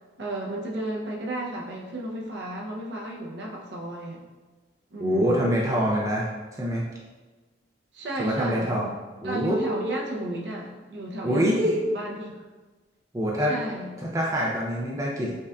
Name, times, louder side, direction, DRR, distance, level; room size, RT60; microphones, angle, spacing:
voice 1, 0.2-4.2 4.9-5.4 7.9-8.8 9.2-12.4 13.5-13.9, right 1 dB, 65° right, -1 dB, 0.6 m, -33 dB
voice 2, 5.0-6.3 6.6-6.9 8.2-8.9 9.2-9.8 11.2-11.7 13.1-13.6 14.0-15.4, equal, 15° right, -3 dB, 0.3 m, -25 dB
5.3 x 2.4 x 2.2 m, 1.3 s
head